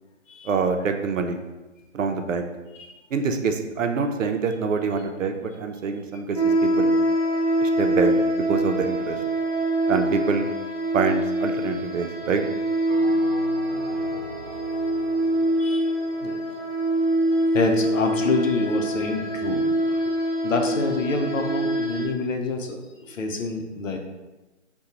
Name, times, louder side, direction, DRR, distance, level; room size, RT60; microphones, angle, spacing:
voice 1, 0.4-1.4 1.9-2.5 3.1-6.9 7.6-9.2 9.9-10.5 10.9-12.4, right 5 dB, 80° right, 5 dB, 0.6 m, -25 dB
sound 1, 6.3-22.0, right 1 dB, 30° left, 0.5 m, -24 dB
Bell, 12.9-17.5, right 1 dB, 20° right, 0.9 m, -41 dB
voice 2, 15.6-15.9 16.2-16.4 17.5-19.6 19.9-20.1 20.4-22.8 23.1-24.0, left 3 dB, 85° left, 4 dB, 0.8 m, -27 dB
5.1 x 2.3 x 2.8 m, 1.1 s
hypercardioid pair, 175°, 38 cm